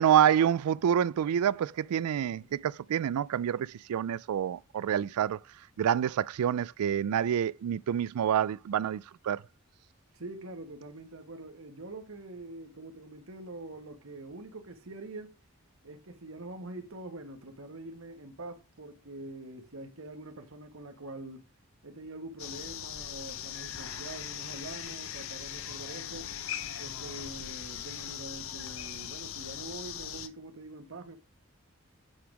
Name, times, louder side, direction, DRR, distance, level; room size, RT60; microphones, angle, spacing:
voice 1, 0.0-5.4 5.8-9.4, right 9 dB, 85° right, 0.3 m, -27 dB
voice 2, 10.1-15.3 15.8-21.4 21.8-26.3 26.8-31.2, right 2 dB, 65° right, 1.3 m, -44 dB
sound 1, 22.4-30.3, left 9 dB, 65° left, 0.7 m, -40 dB
8.7 x 3.7 x 4.9 m
head